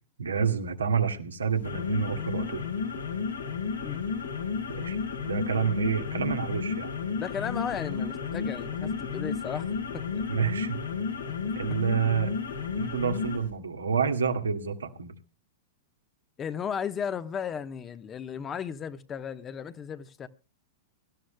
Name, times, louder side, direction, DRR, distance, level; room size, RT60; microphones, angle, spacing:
voice 1, 0.2-2.6 4.7-5.0 5.2-6.9 10.3-10.8 11.6-12.3 12.8-15.1, right 6 dB, 85° right, 1.9 m, -28 dB
sound 1, 1.5-13.5, left 5 dB, 90° left, 5.6 m, -32 dB
voice 2, 7.2-9.7 9.9-10.0 16.4-20.3, left 7 dB, 25° left, 1.1 m, -35 dB
24.0 x 13.0 x 2.2 m
hypercardioid pair, 105°, 0 cm